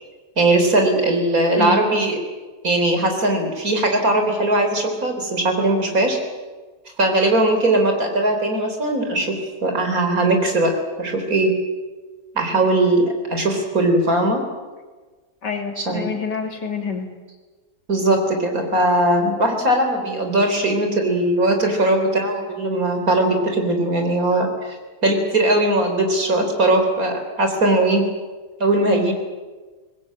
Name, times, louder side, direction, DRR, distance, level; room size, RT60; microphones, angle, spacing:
voice 1, 0.4-2.2 2.6-6.2 7.0-11.5 12.3-14.4 15.8-16.1 17.9-24.8 25.0-28.0 28.6-29.1, right 1 dB, 55° right, 4 dB, 4.3 m, -19 dB
voice 2, 15.4-17.1, left 6 dB, 80° left, 4 dB, 3.3 m, -27 dB
24.0 x 20.0 x 8.7 m, 1.3 s
omnidirectional pair, 1.8 m